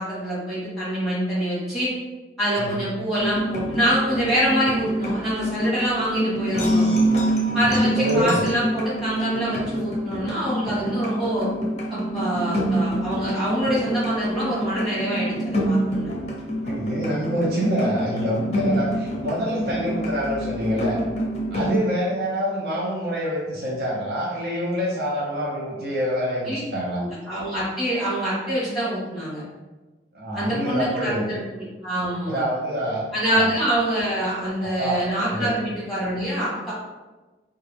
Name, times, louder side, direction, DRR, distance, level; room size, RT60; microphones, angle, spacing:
voice 1, 0.0-1.9 2.4-6.9 7.5-11.5 11.9-16.1 21.5-21.7 26.5-26.6 27.0-29.4 30.3-32.4 33.1-36.7, right 1 dB, ahead, -9 dB, 1.4 m, -25 dB
sound 1, 3.2-21.8, right 1 dB, 35° left, 0.5 m, -26 dB
voice 2, 7.6-8.4 16.6-21.0 21.5-27.0 30.1-31.3 32.3-33.0 33.3-33.5 34.8-35.0 35.3-35.5, equal, 55° right, -5 dB, 0.7 m, -26 dB
3.6 x 2.2 x 3.4 m, 1.2 s
head